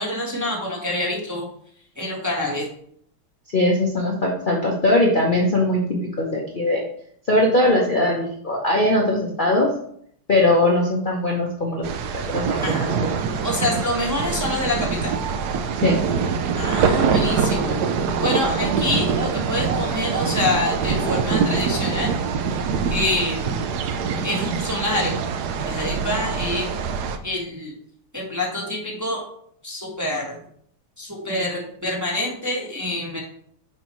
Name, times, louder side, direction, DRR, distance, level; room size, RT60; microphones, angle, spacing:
voice 1, 0.0-1.5 2.0-2.7 12.6-12.9 13.4-15.1 16.5-17.8 18.2-22.2 22.5-22.6 22.9-23.5 24.2-25.1 25.6-26.8 27.2-27.7 28.1-29.2 29.6-30.4 31.0-33.2, left 1 dB, 15° right, -2 dB, 0.8 m, -26 dB
voice 2, 3.5-5.8 6.2-6.8 7.3-9.7 10.3-11.8 12.1-13.1 15.8-16.0, left 1 dB, 65° left, -2 dB, 0.5 m, -20 dB
sound 1, 11.8-27.2, right 5 dB, 80° right, 0.8 m, -24 dB
8.4 x 4.5 x 3.1 m, 0.65 s
omnidirectional pair, 2.4 m